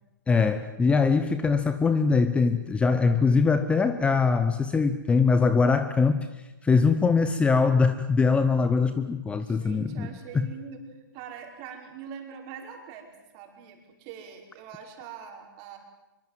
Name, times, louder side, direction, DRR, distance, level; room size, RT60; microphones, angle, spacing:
voice 1, 0.3-10.1 10.3-10.4, left 4 dB, 10° left, 11 dB, 0.9 m, -22 dB
voice 2, 9.4-10.8 11.1-15.8, right 7 dB, 35° right, 3 dB, 5.3 m, -43 dB
24.0 x 24.0 x 7.6 m, 1.1 s
hypercardioid pair, 140°, 12 cm